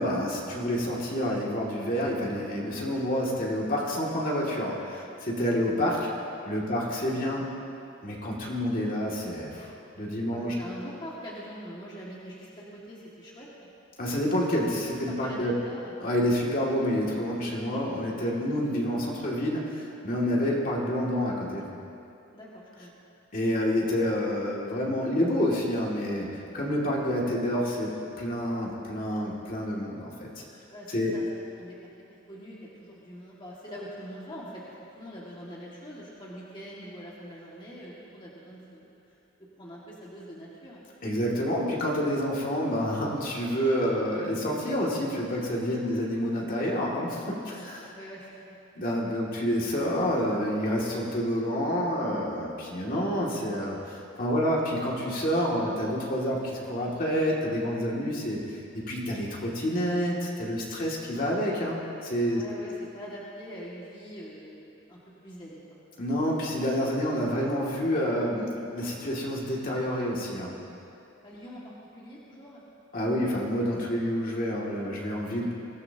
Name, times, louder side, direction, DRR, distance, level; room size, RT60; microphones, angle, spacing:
voice 1, 0.0-6.0 6.4-7.5 8.0-9.7 10.0-10.5 14.0-15.5 16.0-21.6 23.3-27.9 28.2-30.3 30.9-31.1 41.0-47.9 48.7-58.6 58.9-62.4 66.0-70.6 72.9-75.5, equal, 45° left, -4 dB, 2.5 m, -28 dB
voice 2, 10.3-13.5 15.1-15.9 18.5-18.7 22.3-22.9 30.7-31.2 31.6-31.7 32.1-34.6 34.9-39.2 39.6-40.8 45.8-46.0 47.5-48.6 61.0-61.2 62.3-65.8 71.2-72.6, equal, 25° left, -6 dB, 2.1 m, -44 dB
23.0 x 16.0 x 2.9 m, 2.6 s
head